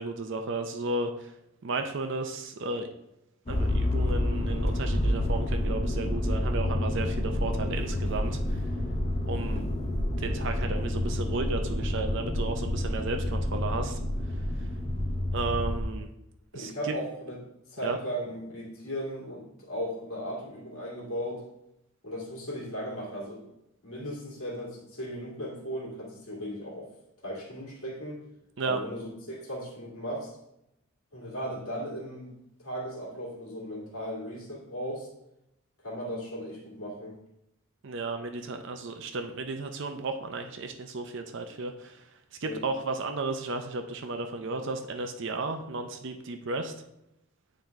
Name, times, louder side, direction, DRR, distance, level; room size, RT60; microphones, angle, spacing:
voice 1, 0.0-1.3 1.6-2.9 3.5-8.7 9.3-9.7 10.2-14.0 15.3-16.1 16.5-17.0 17.8-18.0 28.6-28.8 37.8-42.1 42.4-46.7, right 3 dB, 55° right, 5 dB, 0.5 m, -34 dB
Motor vehicle (road), 3.5-15.8, left 1 dB, 30° left, 0.7 m, -29 dB
voice 2, 16.5-17.4 17.7-21.4 22.0-23.5 23.8-26.9 27.2-28.2 28.6-30.3 31.1-32.3 32.6-35.1 35.8-37.1 42.4-42.6, equal, 75° left, -4 dB, 2.2 m, -36 dB
8.9 x 3.8 x 3.4 m, 0.84 s
head